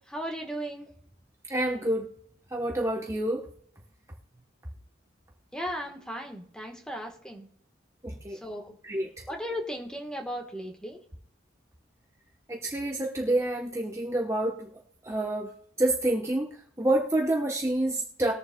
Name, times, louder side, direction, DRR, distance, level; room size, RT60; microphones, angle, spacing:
voice 1, 0.1-0.9 5.5-7.5 8.3-8.7 9.3-11.0, equal, 5° left, 2 dB, 1.2 m, -36 dB
voice 2, 1.5-2.1 2.5-3.5 8.0-8.4 8.8-9.2 12.5-15.5 15.8-18.3, right 1 dB, 15° right, 0 dB, 0.9 m, -28 dB
20.0 x 7.2 x 2.2 m, 0.64 s
head